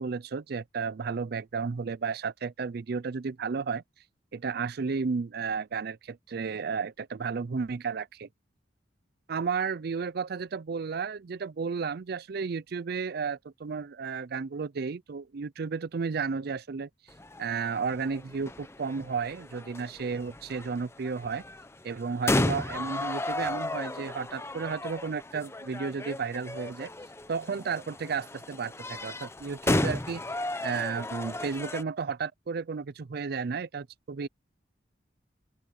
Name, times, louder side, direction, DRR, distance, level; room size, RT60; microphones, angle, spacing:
voice 1, 0.0-3.8 4.3-8.3 9.3-16.9 17.4-21.4 21.8-26.9 27.3-30.2 30.6-34.3, right 5 dB, 60° right, 0.5 m, -33 dB
sound 1, 17.1-31.8, left 1 dB, 15° left, 0.8 m, -34 dB
open air
head